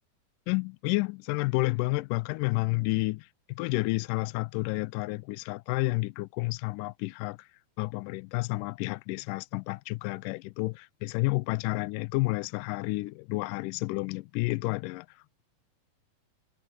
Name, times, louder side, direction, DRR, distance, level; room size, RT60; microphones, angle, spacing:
voice 1, 0.5-7.5 7.8-15.4, left 23 dB, 85° left, 1.9 m, -30 dB
omnidirectional pair, 4.3 m